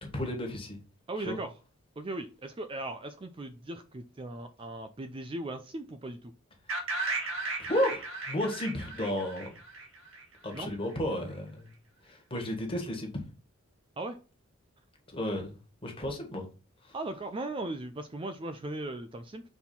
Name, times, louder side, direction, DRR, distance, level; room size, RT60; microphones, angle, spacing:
voice 1, 0.0-0.8 1.3-1.4 7.6-9.5 10.4-11.7 12.0-13.1 15.1-16.5 16.8-16.9, left 1 dB, 25° left, 3 dB, 1.6 m, -33 dB
voice 2, 1.1-1.5 2.0-6.3 10.5-10.7 14.0-14.2 16.9-19.4, right 2 dB, 25° right, 8 dB, 0.4 m, -38 dB
sound 1, 6.7-10.6, right 3 dB, 75° right, 1.6 m, -36 dB
5.5 x 4.2 x 4.3 m, 0.33 s
head